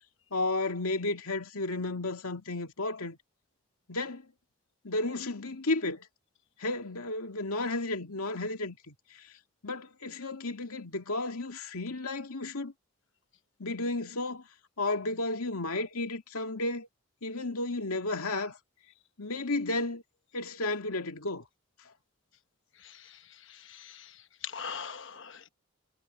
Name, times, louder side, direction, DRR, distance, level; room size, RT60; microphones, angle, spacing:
voice 1, 0.3-3.2 3.9-4.3 4.8-6.1 6.6-9.3 9.6-12.7 13.6-14.4 14.8-16.9 17.2-18.6 19.2-20.0 20.3-21.4, left 2 dB, 85° left, 2.4 m, -33 dB
voice 2, 23.7-24.1 24.4-25.5, left 6 dB, 60° left, 1.2 m, -40 dB
head